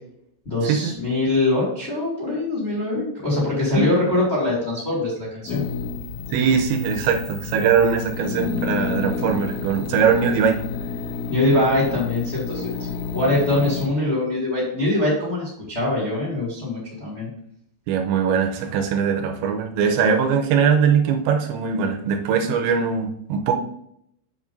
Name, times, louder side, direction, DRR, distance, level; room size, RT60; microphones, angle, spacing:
voice 1, 0.4-5.6 11.3-12.7 13.1-17.3, left 2 dB, 85° left, -6 dB, 0.6 m, -23 dB
sound 1, 5.5-13.9, left 5 dB, 60° left, 2.2 m, -30 dB
voice 2, 6.3-10.6 17.9-23.5, right 6 dB, 85° right, 5 dB, 2.9 m, -21 dB
7.4 x 7.4 x 2.6 m, 0.72 s
omnidirectional pair, 5.5 m